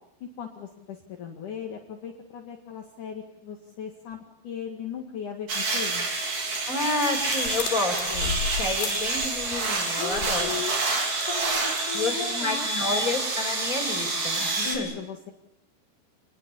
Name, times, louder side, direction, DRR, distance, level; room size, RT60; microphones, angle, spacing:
voice 1, 0.2-6.1 10.0-10.8 11.3-13.0 14.6-15.3, left 7 dB, 60° left, 2 dB, 3.3 m, -37 dB
sound 1, 5.5-14.8, right 3 dB, 50° right, 5.4 m, -28 dB
voice 2, 6.7-8.3 8.6-10.6 11.9-14.9, left 3 dB, 20° left, 2 dB, 5.6 m, -30 dB
sound 2, 7.2-9.8 10.1-10.6 11.1-12.0, left 6 dB, 75° left, 5.2 m, -35 dB
27.5 x 21.0 x 8.5 m, 0.86 s
omnidirectional pair, 4.4 m